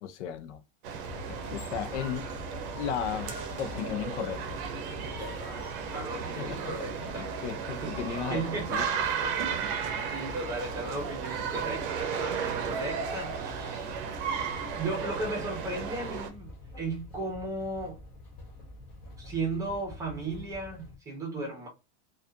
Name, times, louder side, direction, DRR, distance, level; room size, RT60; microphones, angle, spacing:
voice 1, 0.0-0.6 1.5-2.3 2.8-4.4 6.4-6.6 7.0-8.9, left 8 dB, 85° left, 0.6 m, -35 dB
sound 1, 0.8-16.3, right 7 dB, 50° right, 0.6 m, -34 dB
sound 2, 1.0-21.0, left 2 dB, 25° left, 0.6 m, -46 dB
voice 2, 5.2-7.4 7.8-14.0 14.7-16.5 16.8-18.0 19.2-21.7, right 2 dB, 10° right, 0.9 m, -36 dB
2.6 x 2.4 x 2.3 m
supercardioid pair, 170°, 35 cm